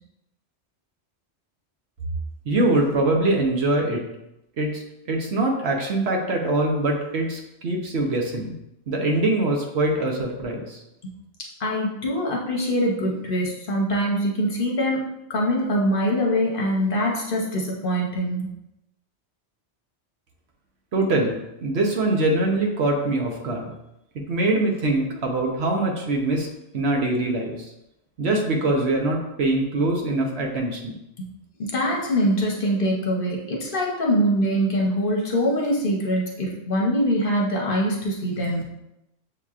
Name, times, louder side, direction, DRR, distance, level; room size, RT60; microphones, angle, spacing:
voice 1, 2.5-4.0 4.6-4.8 5.1-8.5 8.9-10.8 20.9-23.7 24.3-26.5 26.7-27.5 28.2-30.9, right 2 dB, 65° right, 1 dB, 1.0 m, -23 dB
voice 2, 11.6-18.5 31.2-31.3 31.7-38.6, equal, 50° left, -2 dB, 0.9 m, -23 dB
6.6 x 2.9 x 2.4 m, 0.88 s
omnidirectional pair, 1.2 m